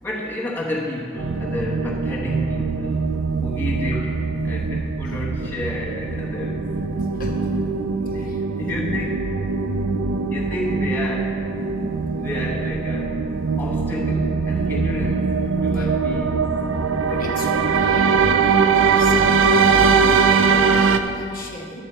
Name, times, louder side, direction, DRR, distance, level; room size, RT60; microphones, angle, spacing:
voice 1, 0.0-3.0 3.4-6.8 8.1-9.2 10.3-11.5 11.8-13.3 13.6-16.6, left 1 dB, 10° left, -5 dB, 1.0 m, -30 dB
sound 1, 1.2-21.0, right 5 dB, 80° right, 0.5 m, -21 dB
voice 2, 8.2-8.7 15.7-15.9 17.0-21.8, left 1 dB, 45° left, 0 dB, 1.0 m, -34 dB
11.0 x 7.7 x 4.4 m, 2.6 s
head